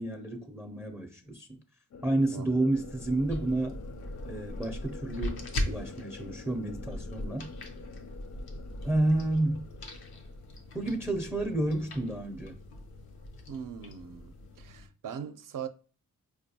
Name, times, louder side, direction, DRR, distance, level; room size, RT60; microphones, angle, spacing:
voice 1, 0.0-1.6 2.0-3.8 4.3-5.4 5.7-7.5 8.8-9.6 10.7-12.6, right 2 dB, 5° right, 0.4 m, -30 dB
sound 1, 1.9-14.6, left 5 dB, 50° left, 0.5 m, -49 dB
sound 2, 2.7-14.9, left 1 dB, 85° left, 0.7 m, -40 dB
voice 2, 13.5-15.7, right 7 dB, 65° right, 0.5 m, -40 dB
4.4 x 2.3 x 2.7 m
cardioid pair, 70°, 35 cm